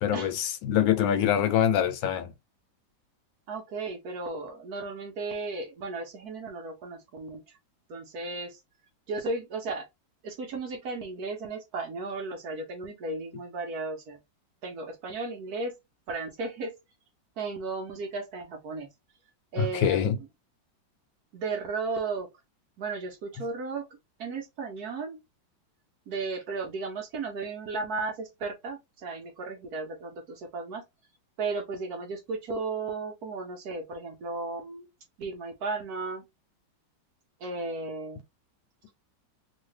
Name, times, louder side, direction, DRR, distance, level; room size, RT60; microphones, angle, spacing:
voice 1, 0.0-2.3 19.6-20.2, left 9 dB, 80° left, 1.4 m, -24 dB
voice 2, 3.5-7.6 7.9-8.6 9.1-9.9 10.2-14.2 14.6-15.7 16.1-16.7 17.4-18.9 19.5-20.3 21.3-22.3 22.8-23.9 24.2-25.2 26.1-30.8 31.4-34.9 35.2-36.2 37.4-38.2, right 3 dB, 60° right, 1.1 m, -35 dB
3.1 x 2.8 x 3.2 m
omnidirectional pair, 2.1 m